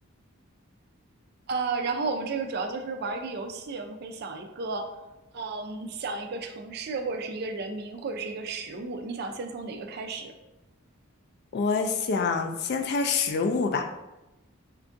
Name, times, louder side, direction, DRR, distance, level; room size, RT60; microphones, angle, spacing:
voice 1, 1.5-4.9 5.3-10.3, right 4 dB, 50° right, 5 dB, 0.3 m, -33 dB
voice 2, 11.5-13.9, left 4 dB, 50° left, 5 dB, 0.3 m, -26 dB
4.4 x 2.4 x 2.5 m, 1.0 s
head